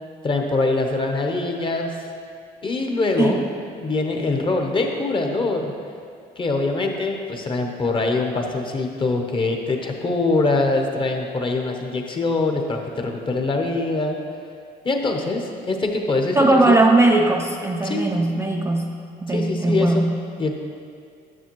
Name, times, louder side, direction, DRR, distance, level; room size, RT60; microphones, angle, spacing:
voice 1, 0.2-2.0 2.6-3.4 3.8-5.7 6.4-14.2 14.8-16.8 17.8-18.1 19.3-20.5, left 3 dB, 30° left, 3 dB, 0.8 m, -23 dB
voice 2, 16.4-18.9 19.2-20.2, right 2 dB, 15° right, 1 dB, 0.4 m, -19 dB
10.0 x 6.5 x 3.0 m, 2.4 s
cardioid pair, 110°, 17 cm